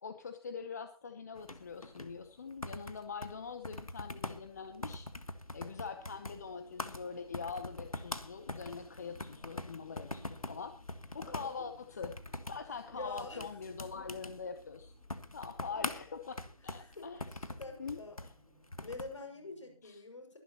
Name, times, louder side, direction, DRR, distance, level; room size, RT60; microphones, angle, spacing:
voice 1, 0.0-5.1 5.5-10.7 11.1-12.1 12.5-14.9 15.3-17.4 17.8-18.0 19.8-20.0, left 5 dB, 30° left, 9 dB, 0.9 m, -43 dB
sound 1, 1.3-19.2, left 2 dB, 90° left, 1.6 m, -44 dB
sound 2, 4.7-19.8, right 1 dB, 10° right, 2.9 m, -69 dB
voice 2, 11.3-11.6 12.9-13.4 15.7-15.9 16.8-17.1 17.5-18.3 18.8-20.4, left 2 dB, 60° left, 4 dB, 6.1 m, -46 dB
23.5 x 10.5 x 3.0 m, 0.34 s
figure-of-eight pair, 160°, 18 cm